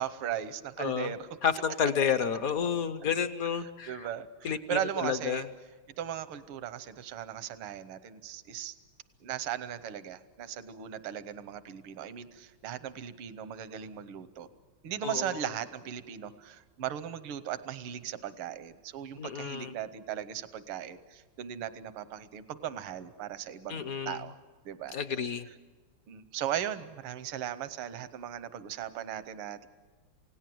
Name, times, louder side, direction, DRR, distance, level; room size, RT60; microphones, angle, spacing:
voice 1, 0.0-1.3 3.9-5.5 6.0-8.8 9.2-14.5 14.8-24.4 24.7-25.0 26.1-29.7, right 10 dB, 85° right, 13 dB, 1.8 m, -37 dB
voice 2, 0.8-1.1 1.4-4.1 4.4-5.5 15.0-15.4 19.2-19.7 23.7-24.2 24.9-25.5, left 7 dB, 60° left, 11 dB, 1.0 m, -31 dB
28.5 x 17.5 x 7.7 m, 1.4 s
omnidirectional pair, 2.3 m